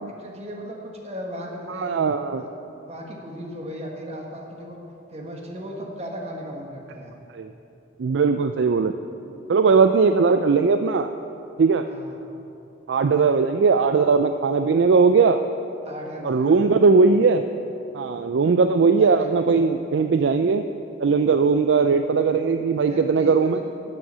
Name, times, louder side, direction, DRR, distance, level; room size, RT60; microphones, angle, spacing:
voice 1, 0.2-1.9 2.4-2.5 2.8-4.8 5.1-7.1 11.9-12.2 15.8-16.6 19.0-19.3 22.9-23.7, equal, 35° right, 0 dB, 1.5 m, -36 dB
voice 2, 1.7-2.4 7.3-7.5 8.0-8.9 9.5-11.1 11.6-11.8 12.9-15.4 16.2-17.4 17.9-20.6 21.0-23.6, right 4 dB, 75° right, 8 dB, 0.4 m, -19 dB
12.0 x 7.6 x 7.4 m, 2.8 s
head